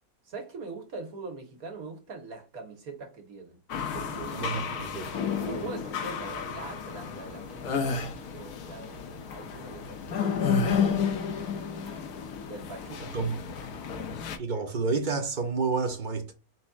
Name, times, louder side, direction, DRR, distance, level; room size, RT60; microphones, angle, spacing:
voice 1, 0.2-3.6 3.9-4.5 5.4-11.8 12.5-13.3 13.7-13.9, right 3 dB, 70° right, 1.8 m, -43 dB
sound 1, 3.7-14.4, left 7 dB, 90° left, 1.3 m, -32 dB
voice 2, 4.4-5.1 13.1-13.4 14.4-16.3, right 4 dB, 45° right, 0.6 m, -29 dB
sound 2, 7.6-8.1 10.4-11.1, left 3 dB, 70° left, 1.4 m, -29 dB
4.2 x 4.1 x 2.4 m
omnidirectional pair, 1.6 m